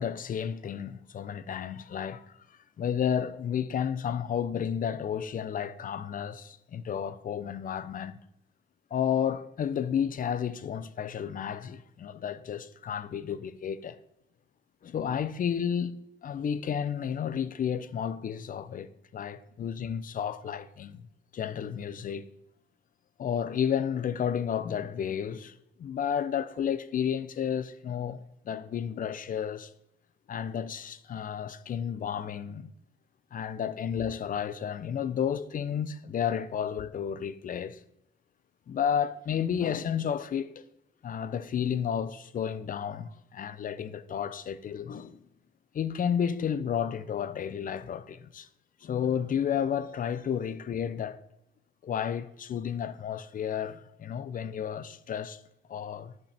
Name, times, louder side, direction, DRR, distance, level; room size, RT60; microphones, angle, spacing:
voice 1, 0.0-2.3 2.8-8.2 8.9-14.0 14.8-16.0 16.2-21.1 21.3-22.3 23.2-25.5 25.8-28.2 28.4-29.7 30.3-32.7 33.3-37.8 38.7-40.6 41.0-45.2 45.7-48.5 48.8-51.2 51.8-55.4 55.7-56.1, left 8 dB, 45° left, 0.5 m, -32 dB
11.0 x 5.3 x 3.4 m
cardioid pair, 90°, 20 cm